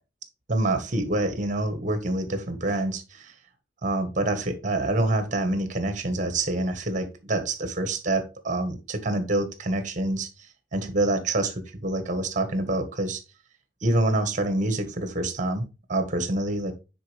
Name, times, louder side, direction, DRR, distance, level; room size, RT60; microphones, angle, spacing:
voice 1, 0.5-3.3 3.8-10.3 10.7-13.2 13.8-16.7, right 2 dB, 40° right, 1.3 m, -26 dB
9.3 x 4.3 x 3.3 m
head